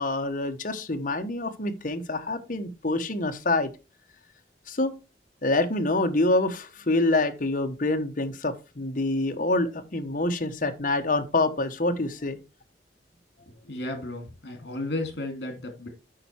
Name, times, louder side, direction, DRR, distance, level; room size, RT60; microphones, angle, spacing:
voice 1, 0.0-3.7 4.7-4.9 5.4-12.4, left 2 dB, 50° left, 1.1 m, -26 dB
voice 2, 13.5-15.9, left 1 dB, 65° left, 2.7 m, -34 dB
8.9 x 5.7 x 4.4 m
head